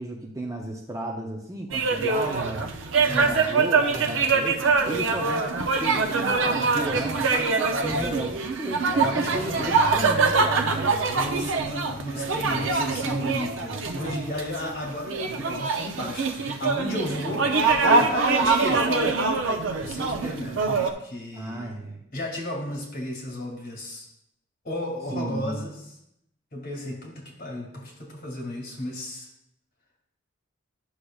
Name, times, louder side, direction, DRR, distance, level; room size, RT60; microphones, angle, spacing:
voice 1, 0.0-2.7 3.0-7.5 7.8-10.7 21.3-22.0 25.1-25.7, right 1 dB, 15° right, 0 dB, 0.6 m, -34 dB
sound 1, 1.7-20.9, right 4 dB, 65° right, 0.6 m, -24 dB
voice 2, 3.1-3.5 7.9-8.2 9.0-9.8 11.1-19.3 19.7-21.7 22.1-24.1 24.6-25.8 26.5-29.3, left 1 dB, 45° left, -2 dB, 2.2 m, -34 dB
sound 2, 8.8-17.9 18.2-18.3, right 2 dB, 65° left, 1.3 m, -42 dB
10.0 x 6.4 x 2.3 m, 0.79 s
head